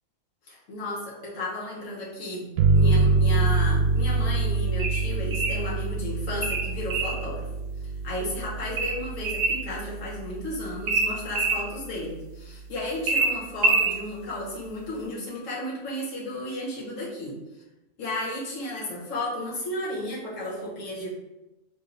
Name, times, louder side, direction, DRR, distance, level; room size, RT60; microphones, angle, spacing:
voice 1, 0.5-2.5 2.7-7.4 8.0-17.4 18.0-21.1, left 1 dB, 65° left, -6 dB, 1.7 m, -33 dB
sound 1, 2.6-11.9, right 3 dB, 90° right, 1.0 m, -26 dB
sound 2, 4.8-5.6 6.4-7.2 8.8-9.6 10.9-11.6 13.1-14.0, right 3 dB, 65° right, 0.8 m, -25 dB
4.2 x 3.2 x 3.3 m, 1.0 s
omnidirectional pair, 1.5 m